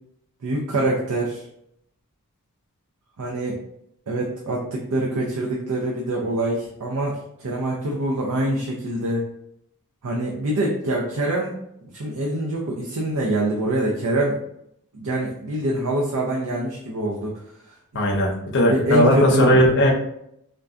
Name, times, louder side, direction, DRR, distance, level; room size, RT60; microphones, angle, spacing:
voice 1, 0.4-1.4 3.2-3.6 4.1-9.3 10.0-11.6 11.9-14.4 14.9-17.4 18.7-19.7, right 1 dB, 85° right, -2 dB, 0.5 m, -25 dB
voice 2, 17.9-19.9, equal, 50° left, 0 dB, 0.5 m, -17 dB
3.7 x 2.2 x 2.4 m, 0.75 s
head